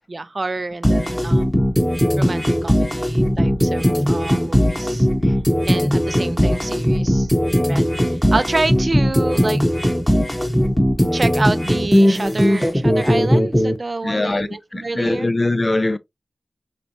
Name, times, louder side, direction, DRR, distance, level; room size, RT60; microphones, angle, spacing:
voice 1, 0.1-1.7 2.2-5.4 5.7-7.3 7.7-9.6 11.1-15.3, right 2 dB, 40° right, 0.5 m, -28 dB
sound 1, 0.8-13.7, equal, 5° left, 1.0 m, -18 dB
voice 2, 14.0-16.0, left 2 dB, 35° left, 0.4 m, -22 dB
4.0 x 3.3 x 2.6 m
wide cardioid pair, 75°, 0 cm